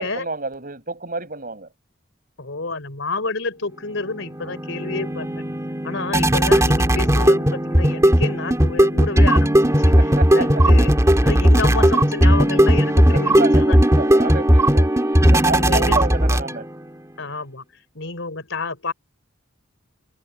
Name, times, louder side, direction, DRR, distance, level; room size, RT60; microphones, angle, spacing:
voice 1, 0.0-1.7 10.0-10.6 13.1-14.9 15.3-16.7, right 3 dB, 40° right, 7.7 m, -29 dB
voice 2, 2.4-5.4 5.8-13.8 15.3-16.0 17.2-17.6 17.9-18.9, left 3 dB, 65° left, 4.1 m, -29 dB
sound 1, 4.0-16.8, equal, 15° right, 2.4 m, -16 dB
head